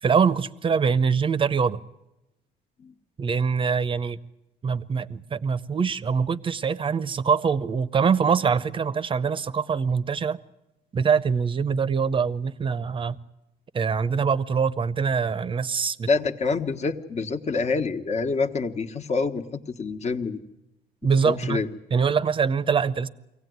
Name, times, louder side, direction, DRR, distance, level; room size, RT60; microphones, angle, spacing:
voice 1, 0.0-1.8 3.2-4.2 4.6-10.4 10.9-13.2 13.7-16.1 21.0-21.6 21.9-23.1, right 6 dB, 30° right, 16 dB, 0.8 m, -24 dB
voice 2, 16.1-20.4 21.2-21.7, left 4 dB, 40° left, 6 dB, 1.4 m, -26 dB
23.5 x 17.5 x 9.4 m, 0.94 s
cardioid pair, 110°, 17 cm